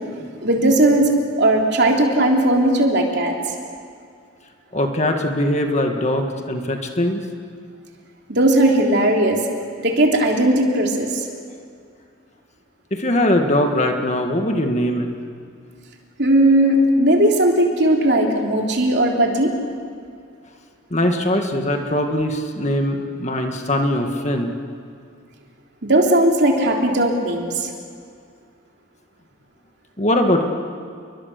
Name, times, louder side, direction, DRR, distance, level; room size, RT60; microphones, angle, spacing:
voice 1, 0.4-3.3 8.3-9.4 9.8-11.2 16.2-19.5 25.8-27.7, right 1 dB, 55° right, 1 dB, 3.3 m, -17 dB
voice 2, 4.7-7.2 12.9-15.1 20.9-24.5 30.0-30.5, left 1 dB, 35° left, 4 dB, 1.9 m, -21 dB
29.0 x 23.5 x 6.8 m, 2.3 s
head